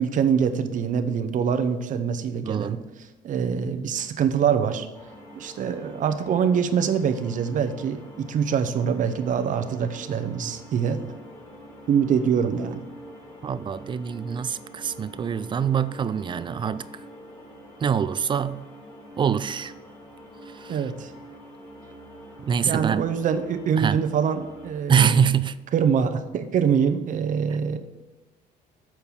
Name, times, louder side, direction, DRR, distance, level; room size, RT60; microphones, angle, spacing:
voice 1, 0.0-2.8 3.2-4.9 5.4-11.0 11.9-12.9 20.7-21.1 22.7-25.2 25.7-27.8, right 7 dB, 50° right, 0.7 m, -24 dB
voice 2, 2.4-2.8 13.4-16.9 17.8-18.6 19.2-19.7 20.5-20.8 22.5-23.0 23.8-24.0 24.9-25.6, right 7 dB, 30° right, 0.3 m, -24 dB
sound 1, 4.9-24.7, equal, 25° left, 2.1 m, -45 dB
7.2 x 4.5 x 6.7 m
cardioid pair, 110°, 17 cm